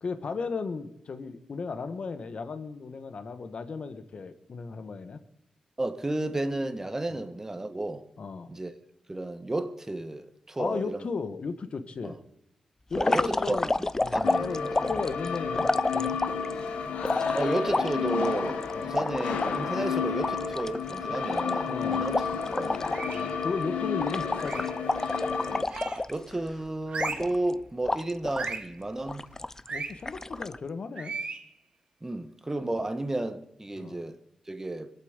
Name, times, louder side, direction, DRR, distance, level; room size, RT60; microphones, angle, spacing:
voice 1, 0.0-5.2 7.1-7.2 8.2-8.5 10.6-12.2 12.9-13.7 14.0-15.7 15.9-16.2 18.8-18.9 21.7-22.0 23.1-24.7 29.7-31.1 33.8-34.0, left 4 dB, 60° left, 1.4 m, -35 dB
voice 2, 5.8-8.0 8.5-8.7 9.1-11.1 12.0-12.2 13.0-14.7 17.3-22.8 26.1-29.2 32.0-34.2 34.5-34.9, right 2 dB, 20° right, 1.5 m, -32 dB
sound 1, 12.9-16.5 17.0-19.6 19.9-20.0 20.2-23.2 23.4-23.6 24.0-26.5 27.0-27.5 27.9-28.6 29.1-29.7 30.1-30.6, left 2 dB, 25° left, 0.5 m, -30 dB
sound 2, 14.2-25.6, left 6 dB, 85° left, 1.4 m, -31 dB
sound 3, 22.9-23.3 24.4-24.8 25.7-26.2 26.9-27.4 28.3-28.7 29.7-29.9 31.0-31.4, right 4 dB, 60° right, 2.4 m, -36 dB
21.0 x 8.4 x 8.1 m
cardioid pair, 55°, 2 cm